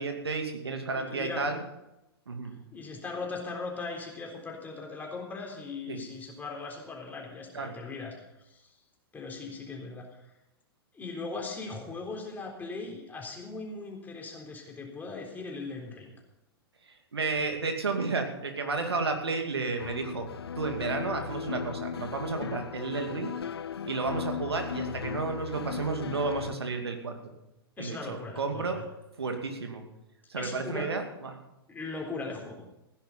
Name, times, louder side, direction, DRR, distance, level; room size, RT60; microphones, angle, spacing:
voice 1, 0.0-1.6 2.3-2.6 5.9-6.0 7.5-7.8 16.9-20.3 20.6-23.4 23.9-27.3 27.8-28.8 29.2-29.8 30.3-31.4, right 4 dB, 80° right, 4 dB, 2.5 m, -32 dB
voice 2, 0.9-1.5 2.7-8.7 9.1-10.2 10.9-16.1 27.8-28.8 30.4-30.9 31.7-32.6, left 3 dB, 15° left, 0 dB, 3.8 m, -39 dB
sound 1, 19.8-26.6, left 8 dB, 75° left, 0.5 m, -37 dB
16.5 x 10.5 x 5.7 m, 0.92 s
figure-of-eight pair, 110°, 13 cm